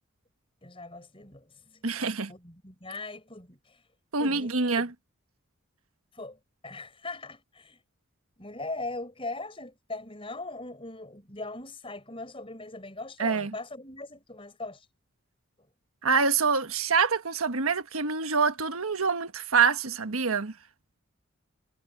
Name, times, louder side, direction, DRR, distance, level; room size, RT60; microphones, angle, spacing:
voice 1, 0.6-1.8 2.3-3.8 4.2-4.5 4.8-4.9 6.1-6.4 6.6-7.8 8.4-14.9, left 2 dB, 25° left, 6.0 m, -40 dB
voice 2, 1.8-2.3 4.1-4.9 13.2-13.5 16.0-20.5, right 5 dB, 85° right, 1.4 m, -26 dB
head